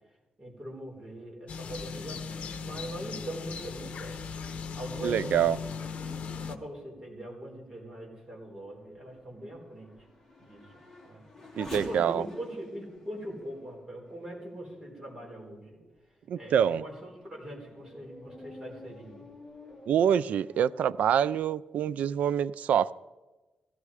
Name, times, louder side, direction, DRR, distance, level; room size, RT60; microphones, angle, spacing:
voice 1, 0.4-4.2 4.7-5.6 6.4-10.1 10.4-10.8 11.0-11.3 11.7-15.8 16.3-19.3, right 1 dB, 20° right, -2 dB, 3.8 m, -42 dB
sound 1, 1.5-6.6, left 5 dB, 60° left, 0.9 m, -38 dB
voice 2, 5.0-5.6 11.6-12.3 16.3-16.8 19.9-22.9, right 9 dB, 85° right, 17 dB, 0.4 m, -26 dB
Race car auto racing / Accelerating revving vroom, 7.4-15.4 16.0-16.1 16.7-21.4, left 2 dB, 10° left, 3.3 m, -50 dB
16.0 x 14.5 x 4.9 m, 1.1 s
wide cardioid pair, 165°, 2 cm